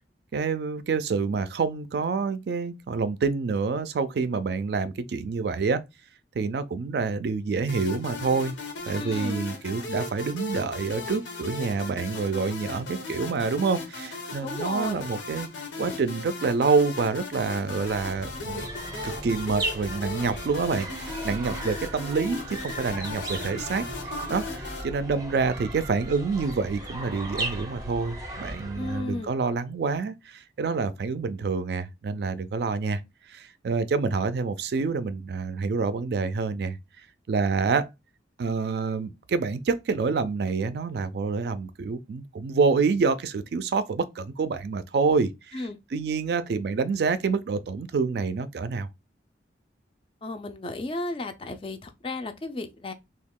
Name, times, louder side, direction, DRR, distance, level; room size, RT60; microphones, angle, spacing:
voice 1, 0.3-5.8 6.3-8.6 8.8-15.5 15.8-18.6 19.0-23.8 24.3-33.0 33.3-36.8 37.3-37.9 38.4-45.6 45.9-48.9, right 4 dB, 65° right, 0.3 m, -27 dB
sound 1, 7.7-24.8, left 3 dB, 85° left, 0.8 m, -37 dB
voice 2, 9.0-9.5 14.4-15.1 28.7-29.3 45.5-45.8 50.2-52.9, left 2 dB, 30° left, 0.4 m, -34 dB
sound 2, 17.8-29.2, right 1 dB, 20° right, 0.6 m, -37 dB
2.8 x 2.3 x 3.6 m
head